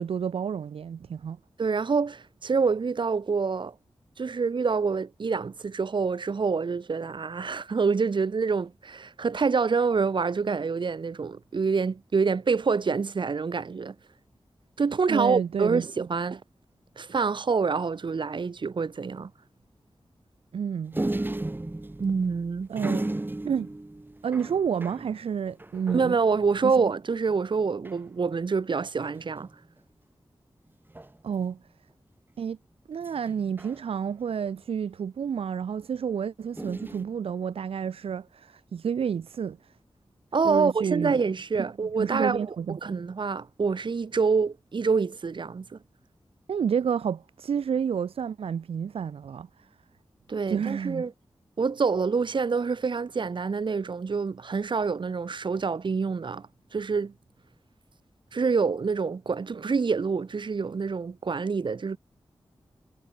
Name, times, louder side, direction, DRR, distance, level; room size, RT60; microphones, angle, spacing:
voice 1, 0.0-1.4 15.1-15.9 20.5-21.0 22.7-23.1 23.4-23.7 24.2-26.2 26.6-26.8 31.2-31.6 32.4-32.6 32.9-39.7 40.4-41.2 42.0-42.8 46.5-49.7 50.5-51.1, right 7 dB, 80° right, 0.4 m, -30 dB
voice 2, 1.6-3.7 4.2-13.9 14.8-16.4 17.0-19.3 22.0-22.7 25.9-29.5 40.3-45.8 50.3-51.1 51.6-57.1 58.3-62.0, right 5 dB, 55° right, 0.8 m, -26 dB
sound 1, 20.9-26.9 27.3-27.4 27.6-28.1 29.0-29.5 30.9-31.4 33.0-34.3 36.6-37.0, right 2 dB, 20° right, 2.3 m, -35 dB
wide cardioid pair, 95°, 10 cm